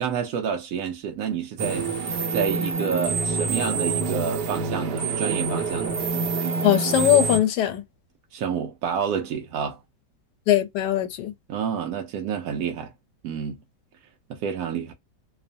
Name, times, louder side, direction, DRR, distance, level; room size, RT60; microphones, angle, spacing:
voice 1, 0.0-1.9 2.3-6.0 8.3-9.8 11.5-12.9 13.2-13.6 14.3-14.9, right 7 dB, 70° right, 1.0 m, -29 dB
sound 1, 1.6-7.4, right 4 dB, 85° right, 1.3 m, -26 dB
voice 2, 6.6-7.8 10.5-11.3, left 12 dB, 85° left, 1.2 m, -20 dB
2.9 x 2.0 x 2.6 m
omnidirectional pair, 1.8 m